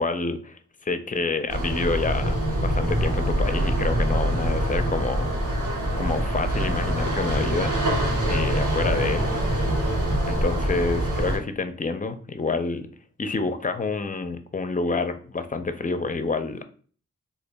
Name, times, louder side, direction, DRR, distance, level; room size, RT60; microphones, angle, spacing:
voice 1, 0.0-5.3 6.0-7.7 8.2-9.3 10.3-12.9 13.2-16.6, left 3 dB, 25° left, 10 dB, 0.5 m, -28 dB
sound 1, 1.5-11.4, right 1 dB, 85° right, 0.9 m, -24 dB
2.9 x 2.3 x 3.3 m, 0.43 s
cardioid pair, 45°, 30 cm